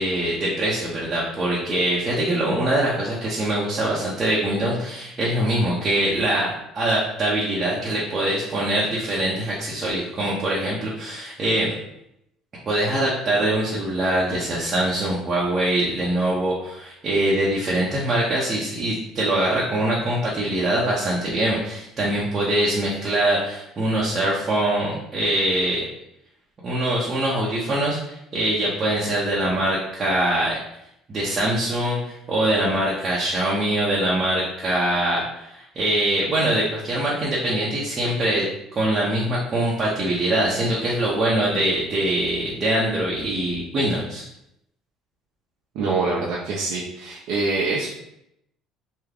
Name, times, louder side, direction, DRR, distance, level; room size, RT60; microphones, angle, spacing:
voice 1, 0.0-11.7 12.7-25.8 26.6-30.6 31.1-38.5 38.7-44.2, right 1 dB, 35° right, -6 dB, 0.8 m, -23 dB
voice 2, 45.7-47.9, right 3 dB, 75° right, -4 dB, 0.6 m, -25 dB
3.5 x 2.2 x 3.4 m, 0.80 s
supercardioid pair, 90°, 0 cm